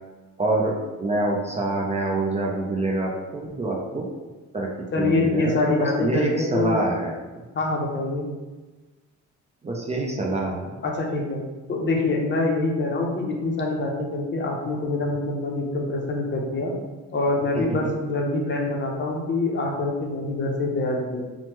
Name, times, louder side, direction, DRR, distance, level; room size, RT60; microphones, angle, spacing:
voice 1, 0.4-4.1 4.5-4.7 5.0-7.1 9.6-10.7, right 2 dB, 20° right, -1 dB, 0.4 m, -26 dB
voice 2, 4.9-6.8 7.5-8.3 10.8-11.4 11.7-16.7 17.1-21.2, left 2 dB, 40° left, 0 dB, 0.6 m, -25 dB
2.9 x 2.1 x 3.2 m, 1.2 s
cardioid pair, 90°, 30 cm